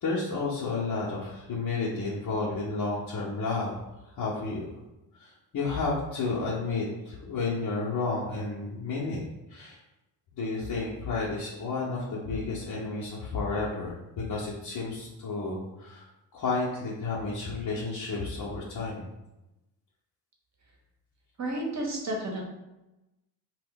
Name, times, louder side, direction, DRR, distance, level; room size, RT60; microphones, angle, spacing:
voice 1, 0.0-3.8 4.2-4.7 5.2-9.2 9.5-9.8 10.4-16.0 16.3-19.1, left 3 dB, 45° left, -6 dB, 0.8 m, -31 dB
voice 2, 21.4-22.4, right 1 dB, 35° right, -1 dB, 0.9 m, -31 dB
2.1 x 2.0 x 3.8 m, 0.97 s
hypercardioid pair, 45°, 49 cm